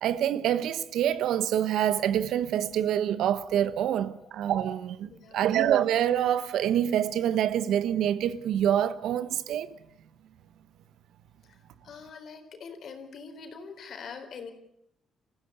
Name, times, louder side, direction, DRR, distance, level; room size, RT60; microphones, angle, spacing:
voice 1, 0.0-9.7, right 10 dB, 80° right, 1.1 m, -26 dB
voice 2, 5.1-5.5 11.4-11.6 11.8-14.5, left 5 dB, 60° left, 4.0 m, -44 dB
27.5 x 15.0 x 8.2 m
cardioid pair, 90°, 0 cm